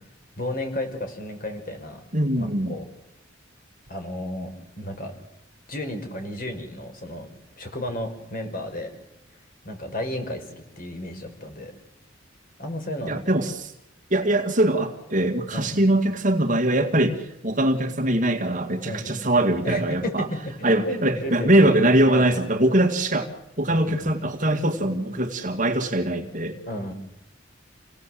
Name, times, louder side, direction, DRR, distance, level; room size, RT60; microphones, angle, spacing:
voice 1, 0.4-2.0 2.4-2.9 3.9-4.5 4.8-5.1 5.7-7.3 7.6-8.9 9.6-11.7 12.6-13.2 15.5-15.9 18.8-19.2 19.6-21.7 22.1-22.4 23.7-24.1 26.6-26.9, left 1 dB, 45° left, 5 dB, 5.1 m, -33 dB
voice 2, 2.1-2.8 13.1-13.7 14.1-20.3 20.6-23.3 23.6-26.6, right 1 dB, 40° right, 4 dB, 2.2 m, -22 dB
28.5 x 18.0 x 7.8 m, 0.89 s
head